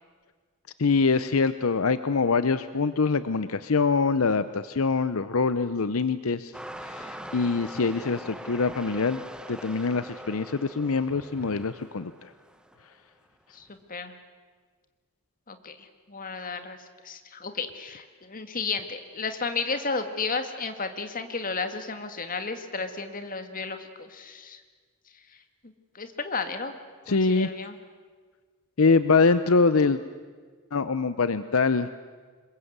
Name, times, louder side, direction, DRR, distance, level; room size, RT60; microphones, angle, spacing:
voice 1, 0.8-6.5 6.8-9.2 9.5-12.1 27.1-27.5 28.8-30.0 30.7-31.9, left 4 dB, 70° left, 13 dB, 0.7 m, -24 dB
sound 1, 6.5-12.9 13.6-13.8, equal, 5° right, 1.0 m, -42 dB
voice 2, 13.5-14.1 15.5-16.8 17.0-24.6 25.9-26.8 27.1-27.8, left 4 dB, 40° left, 8 dB, 2.0 m, -33 dB
26.0 x 22.0 x 8.1 m, 1.5 s
head